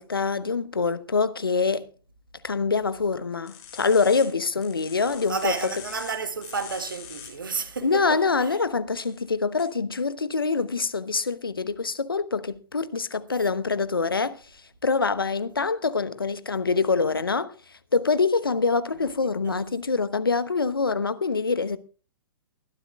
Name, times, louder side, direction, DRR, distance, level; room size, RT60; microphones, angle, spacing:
voice 1, 0.0-1.9 2.4-5.7 7.8-14.4 14.8-17.5 17.9-21.8, left 4 dB, 75° left, 1.0 m, -25 dB
sound 1, 3.5-4.2 4.6-6.1 6.4-7.3 9.0-9.2 9.6-9.7, left 9 dB, 30° left, 5.7 m, -43 dB
voice 2, 5.1-8.5 19.2-19.6, right 5 dB, 65° right, 1.8 m, -32 dB
23.5 x 12.0 x 2.3 m
figure-of-eight pair, 115°, 12 cm